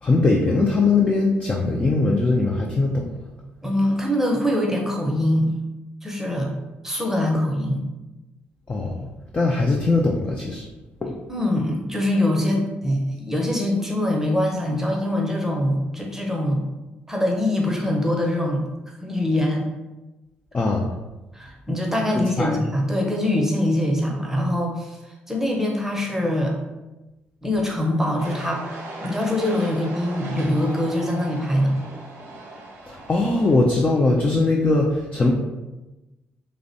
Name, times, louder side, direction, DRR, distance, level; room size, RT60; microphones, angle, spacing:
voice 1, 0.0-3.1 8.7-9.1 9.3-10.7 11.0-11.2 20.5-20.9 22.4-22.6 32.9-35.3, left 3 dB, 25° left, -1 dB, 0.4 m, -20 dB
voice 2, 3.6-5.5 6.0-6.5 6.8-7.8 11.3-16.6 17.1-19.6 21.3-25.0 25.3-26.6 27.4-28.6 29.0-31.7, left 1 dB, 10° right, 0 dB, 0.7 m, -23 dB
sound 1, 28.2-33.6, right 2 dB, 60° right, 0.6 m, -38 dB
2.5 x 2.1 x 2.6 m, 1.1 s
hypercardioid pair, 45°, 5 cm